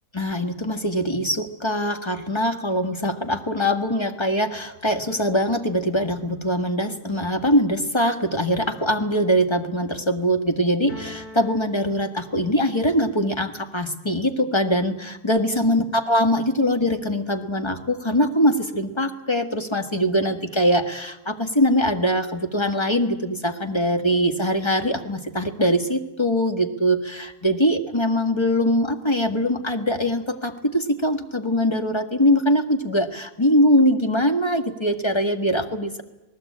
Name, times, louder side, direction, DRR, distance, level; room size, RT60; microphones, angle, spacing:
voice 1, 0.1-36.0, equal, 15° left, 6 dB, 1.5 m, -22 dB
sound 1, 10.9-12.8, left 2 dB, 65° left, 7.0 m, -42 dB
27.0 x 19.0 x 8.6 m, 0.96 s
omnidirectional pair, 2.2 m